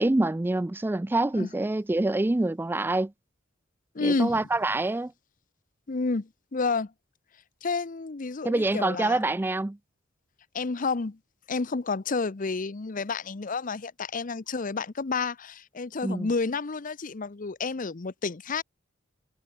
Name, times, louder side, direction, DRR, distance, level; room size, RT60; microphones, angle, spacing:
voice 1, 0.0-3.1 4.0-5.1 8.4-9.8 16.0-16.3, right 2 dB, 10° right, 0.3 m, -26 dB
voice 2, 3.9-4.4 5.9-6.9 7.6-9.2 10.5-11.2 11.5-18.6, left 4 dB, 45° left, 0.7 m, -30 dB
head